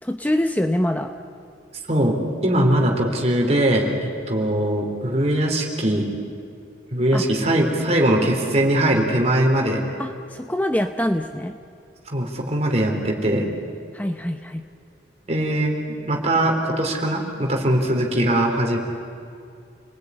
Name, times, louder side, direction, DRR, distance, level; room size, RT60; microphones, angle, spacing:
voice 1, 0.0-1.1 7.1-7.3 10.0-11.6 13.9-14.7, left 1 dB, 10° left, 6 dB, 0.8 m, -24 dB
voice 2, 1.9-6.1 6.9-9.8 12.1-13.5 15.3-15.7 16.0-18.8, right 1 dB, 35° right, 1 dB, 4.1 m, -21 dB
30.0 x 20.0 x 9.9 m, 2.5 s
head